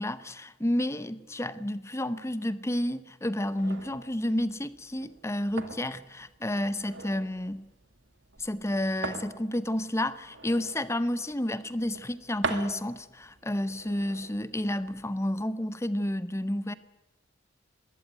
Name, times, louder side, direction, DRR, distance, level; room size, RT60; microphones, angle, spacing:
voice 1, 0.0-7.7 8.4-16.7, left 1 dB, 15° left, 15 dB, 0.8 m, -30 dB
sound 1, 3.6-15.4, right 3 dB, 65° right, 2.3 m, -42 dB
21.0 x 16.5 x 9.6 m, 1.1 s
head